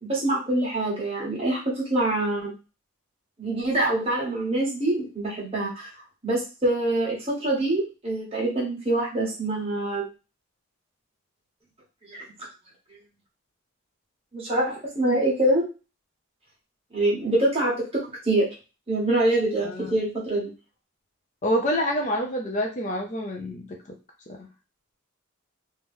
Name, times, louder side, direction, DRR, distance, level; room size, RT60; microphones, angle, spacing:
voice 1, 0.0-2.5 3.4-5.9 6.2-10.1 12.1-12.2 14.3-15.6 16.9-18.5 18.9-20.5, right 1 dB, 25° right, -4 dB, 1.5 m, -25 dB
voice 2, 21.4-23.8 24.3-24.4, equal, 35° left, 2 dB, 0.5 m, -27 dB
3.1 x 3.0 x 3.6 m, 0.31 s
head